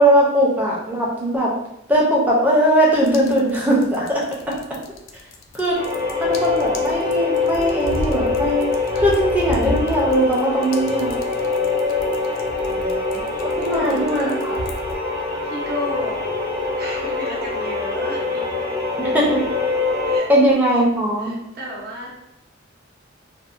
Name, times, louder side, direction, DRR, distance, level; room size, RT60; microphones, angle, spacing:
voice 1, 0.0-1.5 1.9-4.2 5.5-5.8 6.1-8.7 8.9-11.1 13.6-14.3 19.0-19.4 20.3-21.3, right 1 dB, 10° right, -4 dB, 0.5 m, -19 dB
sound 1, 2.9-15.0, left 2 dB, 75° left, 0.4 m, -33 dB
sound 2, 5.7-20.2, left 3 dB, 25° right, 1.0 m, -24 dB
voice 2, 12.6-14.6 15.4-16.3 16.6-18.7 20.1-20.8 21.2-22.1, left 1 dB, 50° right, -3 dB, 0.7 m, -33 dB
2.6 x 2.1 x 2.4 m, 0.82 s
head